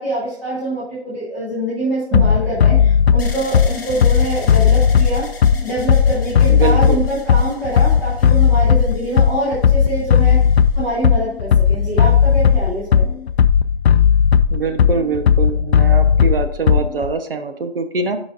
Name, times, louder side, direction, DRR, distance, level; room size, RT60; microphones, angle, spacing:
voice 1, 0.0-5.2 5.6-10.4 10.7-13.2, right 1 dB, 5° right, -9 dB, 0.9 m, -24 dB
Bass drum, 2.1-17.1, left 8 dB, 80° left, 0.5 m, -14 dB
sound 1, 2.1-6.1 6.4-6.5, right 1 dB, 20° right, 2.2 m, -31 dB
sound 2, 3.2-11.2 11.9-12.6, left 3 dB, 20° left, 0.9 m, -39 dB
voice 2, 6.5-7.0 14.5-18.2, right 4 dB, 60° right, 8 dB, 0.9 m, -23 dB
12.0 x 5.2 x 2.5 m, 0.71 s
hypercardioid pair, 170°, 32 cm